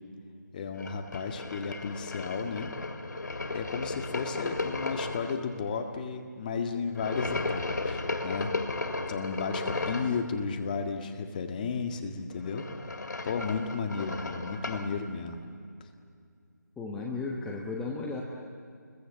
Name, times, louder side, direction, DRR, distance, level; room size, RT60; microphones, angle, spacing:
voice 1, 0.5-2.7 3.5-8.5 9.1-12.7 13.2-15.5, left 5 dB, 25° left, 5 dB, 1.7 m, -33 dB
sound 1, 0.8-5.3 6.9-10.2 12.3-14.9, left 3 dB, 65° left, 2.5 m, -35 dB
voice 2, 16.8-18.2, left 3 dB, 5° left, -1 dB, 1.0 m, -34 dB
28.5 x 22.5 x 7.4 m, 2.3 s
figure-of-eight pair, 160°, 10 cm